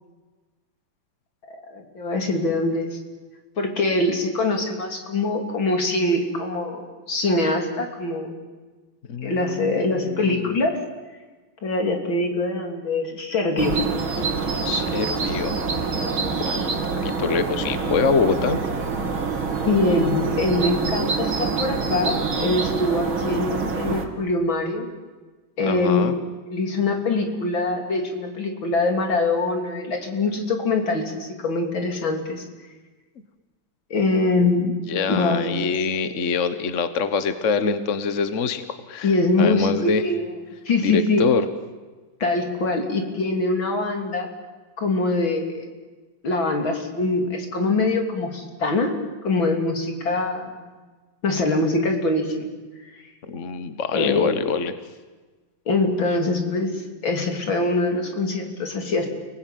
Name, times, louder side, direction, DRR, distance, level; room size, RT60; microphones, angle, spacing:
voice 1, 1.7-3.0 3.6-8.3 9.2-10.8 11.6-13.8 19.7-24.9 25.6-26.1 26.5-32.4 33.9-34.8 35.1-35.7 39.0-40.3 40.7-41.3 42.2-44.3 44.8-45.7 46.2-49.0 49.2-50.7 51.2-52.5 52.9-53.0 53.9-54.3 55.7-59.1, left 2 dB, 75° left, 4 dB, 4.1 m, -23 dB
voice 2, 9.1-10.7 14.6-15.6 16.4-16.6 17.0-18.6 25.6-26.1 34.9-40.0 40.8-41.5 53.3-54.7 56.1-56.2, left 5 dB, 40° left, 11 dB, 1.5 m, -25 dB
sound 1, 13.6-24.1, right 4 dB, 85° right, 3.2 m, -26 dB
30.0 x 19.5 x 9.3 m, 1.3 s
omnidirectional pair, 2.2 m